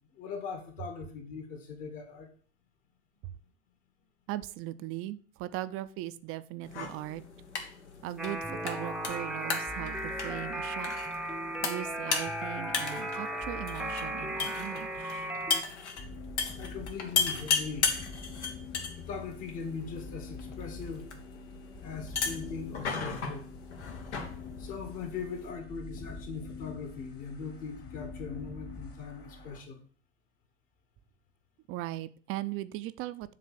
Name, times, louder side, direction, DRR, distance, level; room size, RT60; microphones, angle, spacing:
voice 1, 0.2-2.3 16.6-17.9 19.1-21.1 21.8-23.5 24.6-29.8, left 5 dB, 60° left, 3 dB, 2.1 m, -40 dB
voice 2, 4.3-7.2 8.0-10.9 11.6-15.3 31.7-33.3, right 15 dB, 40° right, 14 dB, 0.5 m, -39 dB
sound 1, 6.6-25.5, left 5 dB, 85° left, 1.3 m, -36 dB
sound 2, 8.2-15.6, right 1 dB, ahead, 0.7 m, -36 dB
sound 3, 16.0-29.6, left 3 dB, 30° left, 1.3 m, -45 dB
7.5 x 3.3 x 6.3 m, 0.44 s
hypercardioid pair, 85°, 33 cm